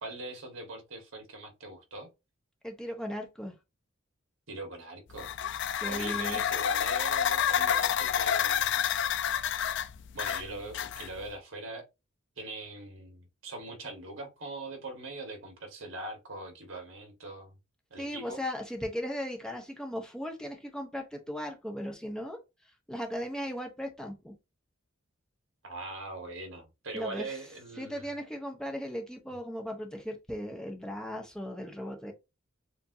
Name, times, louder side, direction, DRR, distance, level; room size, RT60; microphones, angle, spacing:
voice 1, 0.0-2.1 4.5-5.3 5.9-8.9 10.1-11.9 12.4-17.5 17.9-18.4 25.6-28.1, right 2 dB, 75° right, 1.6 m, -41 dB
voice 2, 2.6-3.5 5.7-6.4 18.0-22.4 22.9-24.3 26.9-27.3 27.8-32.1, equal, 5° left, 0.7 m, -37 dB
sound 1, 5.1-11.3, left 9 dB, 60° left, 0.4 m, -29 dB
6.9 x 2.6 x 2.7 m
head